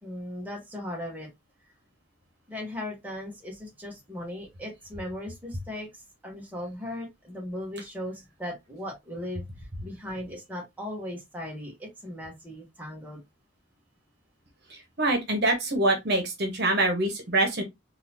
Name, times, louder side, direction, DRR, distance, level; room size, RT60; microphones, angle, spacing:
voice 1, 0.0-1.3 2.5-9.4 9.8-13.2, left 1 dB, 10° right, 1.1 m, -37 dB
voice 2, 15.0-17.6, right 2 dB, 50° right, 1.1 m, -24 dB
3.9 x 2.7 x 2.7 m
head